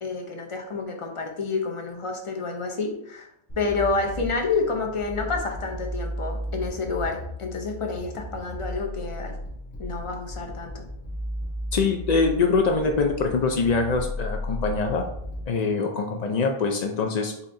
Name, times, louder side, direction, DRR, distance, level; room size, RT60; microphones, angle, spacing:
voice 1, 0.0-3.3 3.6-9.3 9.8-10.9, left 4 dB, 35° left, 2 dB, 0.6 m, -29 dB
sound 1, 3.5-15.4, equal, 55° left, 2.4 m, -35 dB
voice 2, 11.7-15.0 15.5-17.3, left 4 dB, 75° left, 3 dB, 0.3 m, -24 dB
7.1 x 2.8 x 2.6 m, 0.73 s
omnidirectional pair, 1.3 m